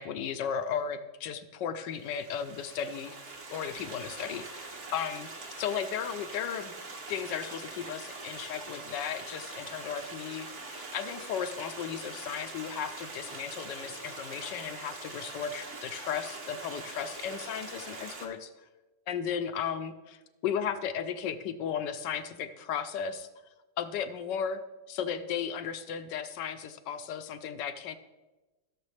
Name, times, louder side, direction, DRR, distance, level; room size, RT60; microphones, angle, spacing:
voice 1, 0.0-3.2 3.5-5.3 5.6-6.7 7.1-18.5 19.1-23.3 23.8-24.6 24.9-28.0, left 8 dB, 70° left, 11 dB, 1.2 m, -35 dB
Stream, 1.9-18.3, right 3 dB, 40° right, 1.4 m, -43 dB
16.0 x 6.7 x 3.2 m, 1.1 s
omnidirectional pair, 2.1 m